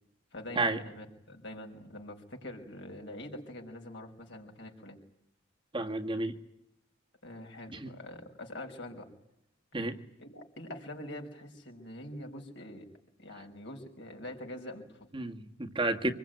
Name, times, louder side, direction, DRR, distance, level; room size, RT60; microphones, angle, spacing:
voice 1, 0.3-5.0 7.2-9.1 10.2-12.9 13.2-15.1, left 1 dB, 65° left, 5.6 m, -44 dB
voice 2, 5.7-6.3 7.7-7.9 9.7-10.0 15.1-16.1, right 2 dB, 25° right, 1.7 m, -31 dB
26.0 x 21.5 x 9.3 m
head